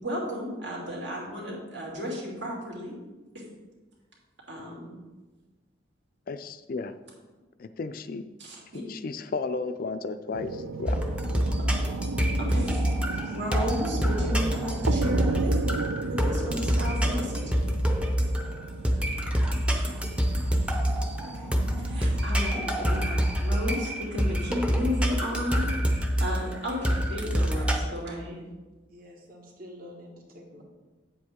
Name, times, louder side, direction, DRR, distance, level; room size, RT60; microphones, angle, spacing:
voice 1, 0.0-3.0 3.3-3.4 4.5-4.9 8.4-8.8 12.4-15.7 16.0-17.4 21.2-25.7 26.2-28.5, left 1 dB, 70° right, -3 dB, 2.8 m, -34 dB
voice 2, 6.3-7.0 7.6-8.2 8.7-11.0, left 4 dB, 45° left, 10 dB, 0.4 m, -33 dB
sound 1, 10.3-22.2, right 4 dB, 85° right, 0.4 m, -35 dB
sound 2, 10.9-27.8, equal, 5° right, 0.6 m, -26 dB
voice 3, 28.9-30.6, left 1 dB, 50° right, 0 dB, 1.6 m, -47 dB
8.5 x 7.9 x 3.6 m, 1.2 s
head